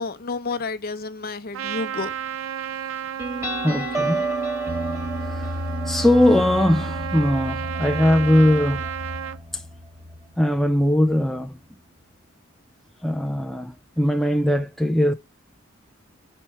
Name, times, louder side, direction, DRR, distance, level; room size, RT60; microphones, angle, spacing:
voice 1, 0.0-2.1, left 3 dB, 50° left, 0.8 m, -30 dB
Trumpet, 1.5-9.4, right 9 dB, 70° right, 0.4 m, -33 dB
sound 1, 3.2-10.3, right 1 dB, 15° right, 1.5 m, -30 dB
voice 2, 3.6-4.3 5.3-5.5 5.9-8.8 10.4-11.6 13.0-15.1, left 1 dB, ahead, 0.4 m, -20 dB
4.6 x 4.3 x 5.4 m
head